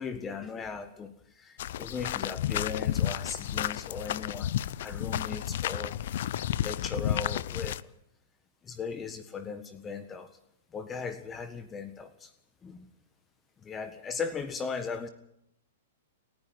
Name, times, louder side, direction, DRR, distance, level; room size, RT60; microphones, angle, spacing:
voice 1, 0.0-4.5 4.8-6.0 6.6-7.8 8.6-10.3 10.7-12.3 12.6-12.9 13.6-15.1, left 5 dB, 20° left, 10 dB, 1.6 m, -38 dB
sound 1, 1.6-7.8, left 11 dB, 60° left, 0.7 m, -31 dB
29.0 x 10.5 x 9.5 m, 0.76 s
hypercardioid pair, 125°, 0 cm